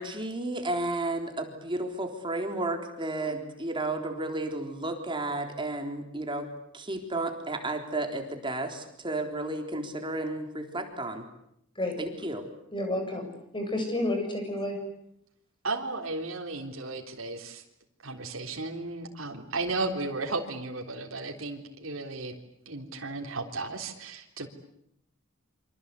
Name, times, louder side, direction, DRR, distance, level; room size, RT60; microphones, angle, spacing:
voice 1, 0.0-11.2 12.0-12.5, right 2 dB, 25° right, 4 dB, 3.7 m, -33 dB
voice 2, 12.7-13.3 13.5-14.8, left 1 dB, 25° left, 3 dB, 7.7 m, -30 dB
voice 3, 15.6-17.6 18.0-22.4 22.7-24.5, right 3 dB, 70° right, 1 dB, 3.7 m, -34 dB
28.0 x 25.5 x 8.4 m, 0.77 s
head